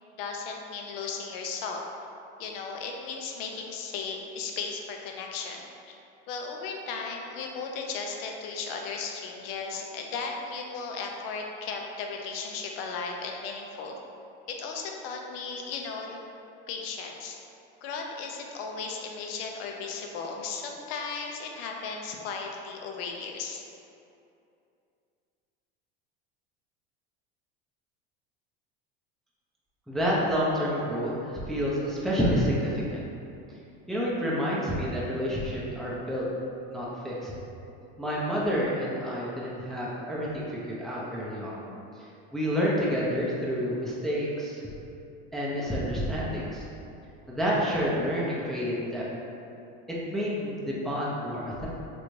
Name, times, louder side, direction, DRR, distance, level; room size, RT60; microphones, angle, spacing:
voice 1, 0.2-1.8 2.4-6.0 6.3-14.0 14.5-16.2 16.7-17.4 17.8-23.6, left 5 dB, 75° left, 1 dB, 0.5 m, -36 dB
voice 2, 29.9-33.0 33.9-36.2 36.7-37.3 38.0-41.6 42.3-44.6 45.3-46.6 47.3-49.0 49.9-51.7, equal, ahead, -7 dB, 0.5 m, -29 dB
3.2 x 2.6 x 3.1 m, 2.7 s
supercardioid pair, 110°, 29 cm